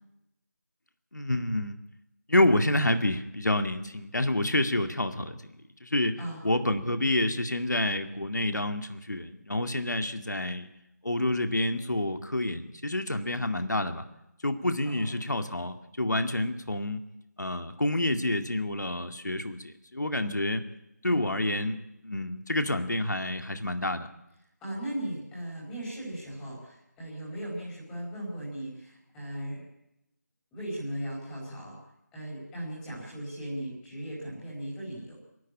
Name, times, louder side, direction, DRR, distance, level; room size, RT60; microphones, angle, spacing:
voice 1, 1.1-1.8 2.3-5.4 5.8-6.2 6.4-10.7 11.0-14.1 14.4-17.0 17.4-20.6 21.0-21.8 22.0-24.1, left 1 dB, 80° left, 7 dB, 2.2 m, -28 dB
voice 2, 24.6-29.6 30.5-31.8 32.1-35.1, right 1 dB, 5° left, -6 dB, 5.0 m, -37 dB
26.0 x 12.5 x 8.7 m, 0.86 s
figure-of-eight pair, 165°, 9 cm